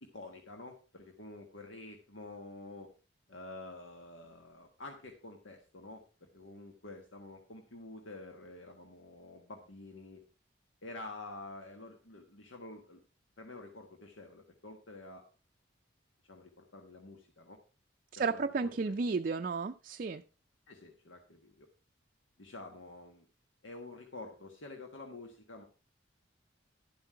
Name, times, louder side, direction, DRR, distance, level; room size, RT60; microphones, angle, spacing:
voice 1, 0.0-2.9 3.3-10.2 10.8-13.0 13.4-15.2 16.3-17.6 18.1-18.9 20.7-21.7 22.4-23.3 23.6-25.6, left 2 dB, 85° left, 3 dB, 1.4 m, -49 dB
voice 2, 18.1-20.2, right 4 dB, 45° right, 7 dB, 0.4 m, -33 dB
12.0 x 7.6 x 4.5 m, 0.34 s
head